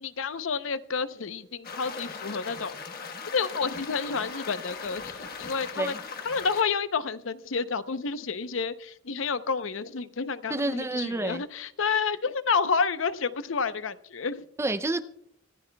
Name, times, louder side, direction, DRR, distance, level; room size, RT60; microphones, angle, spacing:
voice 1, 0.0-2.7 3.3-6.0 6.2-14.4, left 5 dB, 70° left, 0.7 m, -30 dB
sound 1, 1.6-6.6, left 5 dB, 50° left, 1.3 m, -39 dB
voice 2, 10.5-11.4 14.6-15.0, right 2 dB, 15° right, 0.5 m, -29 dB
25.0 x 14.0 x 2.3 m
head